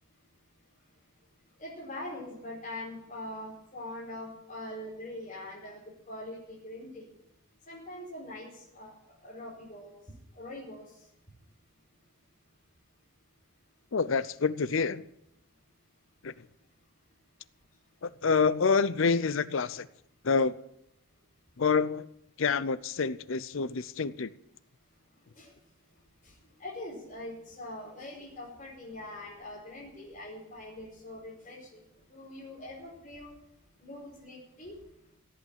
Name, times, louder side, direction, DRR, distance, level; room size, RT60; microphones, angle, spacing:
voice 1, 1.6-7.1 7.7-8.9 9.2-9.9 10.4-10.8 25.4-25.5 26.6-31.8 32.1-33.3 33.8-34.8, left 1 dB, 35° left, -6 dB, 4.7 m, -43 dB
voice 2, 13.9-15.0 16.2-16.3 18.0-19.9 20.2-20.6 21.6-22.1 22.4-24.3, left 5 dB, 60° left, 17 dB, 0.6 m, -27 dB
17.0 x 8.5 x 8.9 m, 0.80 s
head